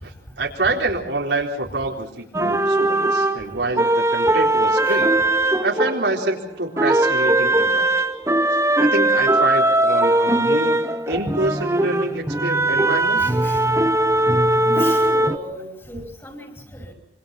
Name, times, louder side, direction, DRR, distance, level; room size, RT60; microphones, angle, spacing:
voice 1, 0.0-5.1 5.6-7.9 8.8-13.3, right 2 dB, 85° right, 1 dB, 4.0 m, -26 dB
sound 1, 2.3-6.4 6.8-15.4, right 1 dB, 15° right, 1.0 m, -19 dB
voice 2, 13.2-13.6 14.6-16.9, equal, 15° left, 3 dB, 5.0 m, -34 dB
26.0 x 25.0 x 5.7 m, 0.65 s
head